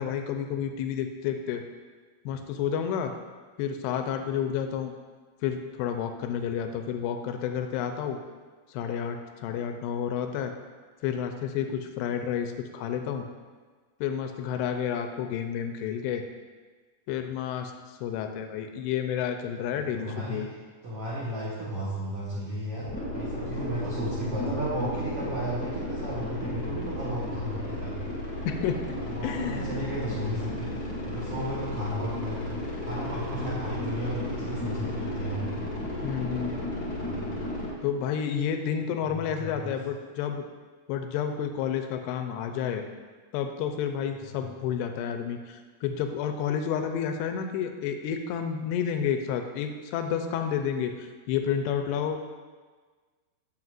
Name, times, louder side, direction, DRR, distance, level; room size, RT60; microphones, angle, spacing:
voice 1, 0.0-1.6 2.3-3.1 3.6-4.9 5.4-8.2 8.7-10.5 11.0-13.3 14.0-16.2 17.1-20.5 28.4-28.8 29.2-29.7 34.8-34.9 36.0-36.7 37.8-40.4 40.9-42.9 43.3-52.2, left 8 dB, 90° left, 6 dB, 2.7 m, -30 dB
voice 2, 19.7-20.4 20.8-28.0 29.0-30.7 31.0-32.5 32.8-35.6 36.9-37.3 39.1-39.7, right 1 dB, 80° right, -7 dB, 1.3 m, -34 dB
sound 1, 22.9-37.7, left 1 dB, 30° left, 1.0 m, -34 dB
9.4 x 7.2 x 2.5 m, 1.4 s
omnidirectional pair, 4.7 m